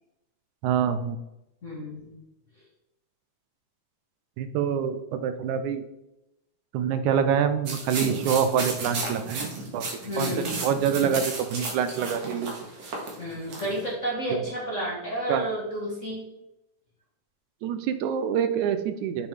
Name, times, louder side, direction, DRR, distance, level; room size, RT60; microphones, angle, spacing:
voice 1, 0.6-1.2 4.4-5.8 6.7-9.8 10.2-12.5 15.3-15.5 17.6-19.3, right 8 dB, 85° right, 10 dB, 2.1 m, -26 dB
voice 2, 1.6-2.1 10.0-10.6 13.2-16.3, right 1 dB, 35° left, -4 dB, 1.3 m, -31 dB
sound 1, 7.7-13.8, right 3 dB, 55° right, 2.7 m, -33 dB
7.1 x 6.8 x 3.5 m, 0.89 s
omnidirectional pair, 3.4 m